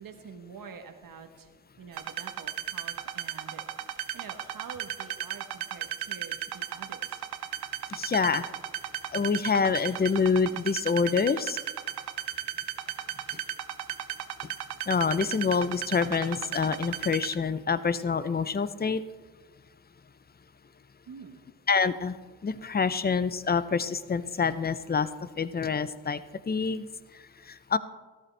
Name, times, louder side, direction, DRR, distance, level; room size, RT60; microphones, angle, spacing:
voice 1, 0.0-1.5 1.8-7.2 21.1-21.4, right 6 dB, 60° right, 7 dB, 1.2 m, -47 dB
sound 1, 1.9-17.3, right 11 dB, 80° right, 0.7 m, -35 dB
voice 2, 7.9-8.5 9.1-11.6 14.9-19.0 21.7-22.2 22.4-25.1 25.4-26.2 26.5-26.9 27.7-27.8, left 5 dB, 25° left, 14 dB, 0.6 m, -26 dB
14.0 x 13.0 x 3.3 m, 1.4 s
cardioid pair, 60°, 38 cm